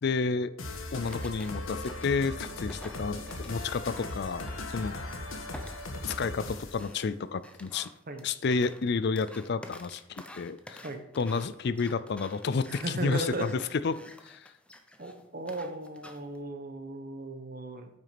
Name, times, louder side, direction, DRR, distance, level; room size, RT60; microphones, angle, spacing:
voice 1, 0.0-0.5 0.9-5.0 6.1-7.9 8.2-10.8 11.2-14.0 14.2-14.5, left 4 dB, 50° left, 15 dB, 0.4 m, -31 dB
sound 1, 0.6-6.9, left 2 dB, 70° left, 1.4 m, -38 dB
sound 2, 1.1-5.1 5.5-16.4, left 1 dB, 5° left, 0.6 m, -50 dB
voice 2, 12.7-13.5 15.0-17.9, right 2 dB, 40° right, 6 dB, 1.1 m, -36 dB
9.0 x 6.1 x 5.9 m, 0.81 s
head